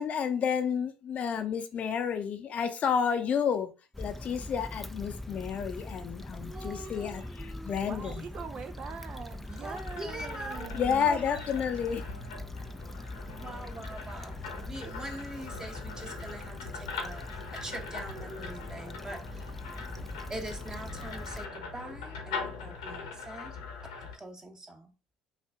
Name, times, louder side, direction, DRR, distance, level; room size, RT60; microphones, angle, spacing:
voice 1, 0.0-3.7 4.0-8.3 10.7-12.0, left 7 dB, 45° left, 0.7 m, -30 dB
Stream / Traffic noise roadway noise / Trickle dribble, 3.9-21.5, left 1 dB, 5° left, 0.5 m, -42 dB
voice 2, 6.4-7.7 8.0-8.1 9.6-10.7 11.0-11.4 13.3-14.3 14.6-19.5 20.3-23.5 24.2-24.9, right 1 dB, 20° right, 1.1 m, -43 dB
voice 3, 7.8-11.0, right 6 dB, 40° right, 0.5 m, -42 dB
sound 1, 9.3-24.2, left 4 dB, 80° left, 1.2 m, -42 dB
5.7 x 2.5 x 3.5 m
hypercardioid pair, 60°, 3 cm